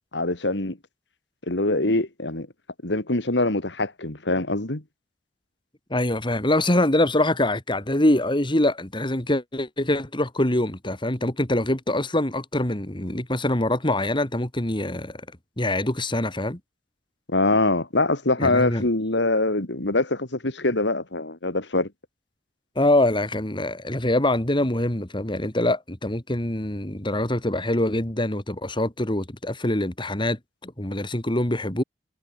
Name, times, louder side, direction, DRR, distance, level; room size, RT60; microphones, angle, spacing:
voice 1, 0.1-0.8 1.5-2.5 2.8-4.8 17.3-21.9, left 2 dB, 75° left, 2.6 m, -24 dB
voice 2, 5.9-15.2 15.6-16.6 18.4-18.8 22.8-31.8, left 1 dB, 25° left, 2.8 m, -24 dB
head